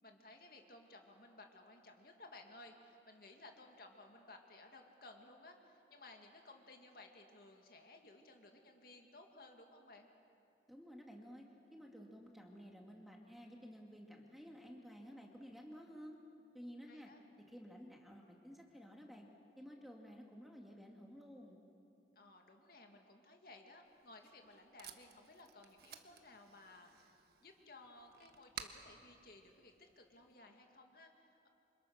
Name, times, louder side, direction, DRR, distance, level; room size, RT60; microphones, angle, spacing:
voice 1, 0.0-10.1 16.9-17.2 22.2-31.5, left 2 dB, 55° left, 3 dB, 2.2 m, -58 dB
voice 2, 10.7-16.1 16.5-17.1 17.5-19.3 19.6-21.6, equal, ahead, 0 dB, 2.1 m, -53 dB
Packing tape duct tape, 23.8-30.3, right 7 dB, 60° right, 1.4 m, -56 dB
28.5 x 26.5 x 6.5 m, 2.7 s
head